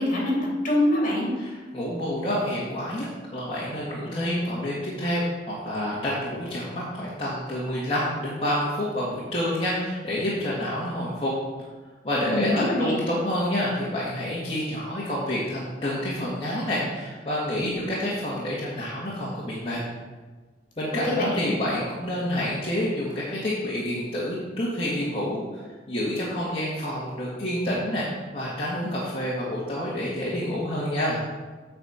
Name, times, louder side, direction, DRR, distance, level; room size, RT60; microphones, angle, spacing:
voice 1, 0.0-1.3 12.3-12.9 21.0-21.5, left 1 dB, 50° left, -3 dB, 3.0 m, -24 dB
voice 2, 1.4-11.3 12.0-19.8 20.8-28.0 28.3-31.2, left 1 dB, 35° left, -8 dB, 1.7 m, -28 dB
8.6 x 4.3 x 7.3 m, 1.4 s
head